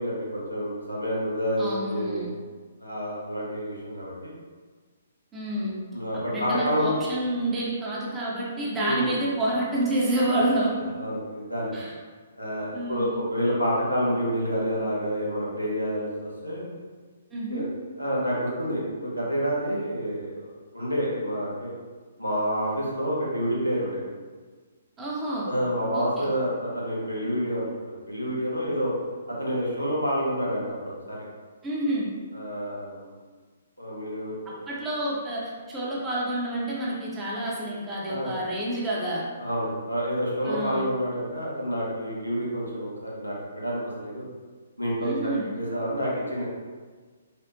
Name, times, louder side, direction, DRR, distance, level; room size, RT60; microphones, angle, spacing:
voice 1, 0.0-2.3 2.8-4.3 5.9-6.9 8.8-9.1 11.0-11.7 12.4-16.7 17.5-17.6 18.0-20.5 20.7-21.7 22.2-24.0 25.4-28.9 29.3-31.2 32.3-33.1 33.8-34.4 38.1-38.4 39.4-44.2 44.8-46.5, equal, 90° left, -5 dB, 0.8 m, -28 dB
voice 2, 1.6-2.3 5.3-5.8 6.3-10.8 11.7-11.9 12.7-13.2 17.3-17.7 25.0-25.5 25.9-26.3 31.6-32.1 34.7-39.3 40.4-40.9 45.0-45.5, right 1 dB, 15° right, -6 dB, 0.6 m, -28 dB
3.4 x 2.0 x 2.6 m, 1.5 s
figure-of-eight pair, 125°, 0 cm